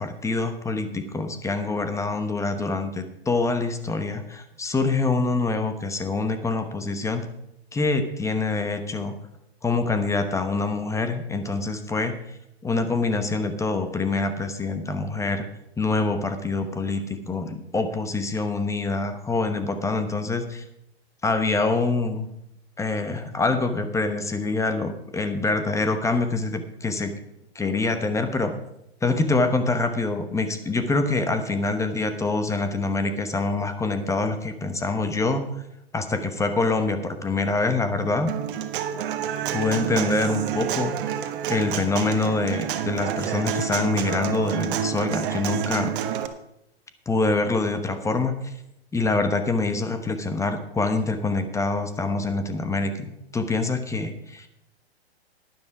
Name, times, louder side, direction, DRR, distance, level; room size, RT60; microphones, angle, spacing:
voice 1, 0.0-7.2 7.7-9.1 9.6-12.1 12.6-15.5 15.8-20.6 21.2-22.3 22.8-27.1 27.5-28.5 29.0-35.6 35.9-38.3 39.5-40.9 41.5-45.9 47.1-48.5 48.9-54.5, left 3 dB, 10° left, 8 dB, 1.0 m, -25 dB
Human voice / Acoustic guitar, 38.3-46.3, right 9 dB, 50° right, 1.3 m, -28 dB
12.0 x 10.5 x 4.8 m, 0.83 s
hypercardioid pair, 115°, 32 cm